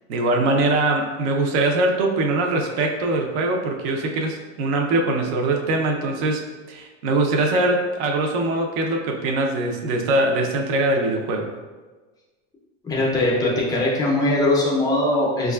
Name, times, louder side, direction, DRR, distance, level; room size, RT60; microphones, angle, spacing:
voice 1, 0.1-6.4 6.7-11.5, right 2 dB, 55° right, 1 dB, 0.5 m, -22 dB
voice 2, 12.8-15.5, left 1 dB, 10° left, -3 dB, 0.4 m, -21 dB
4.6 x 2.3 x 2.2 m, 1.3 s
supercardioid pair, 140°, 38 cm